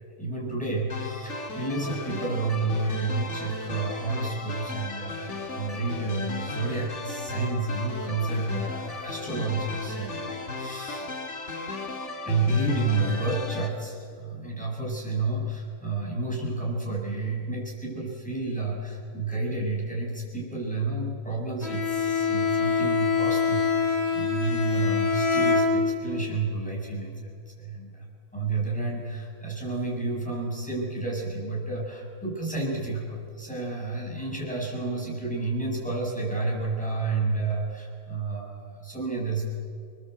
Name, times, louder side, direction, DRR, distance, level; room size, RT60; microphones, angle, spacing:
voice 1, 0.2-11.1 12.2-27.2 27.6-28.1 28.3-39.5, right 3 dB, 5° left, -4 dB, 7.7 m, -30 dB
sound 1, 0.9-13.7, left 3 dB, 50° left, 2.6 m, -36 dB
Bowed string instrument, 21.6-26.2, left 5 dB, 70° left, 5.0 m, -25 dB
27.5 x 22.0 x 8.3 m, 2.4 s
omnidirectional pair, 1.6 m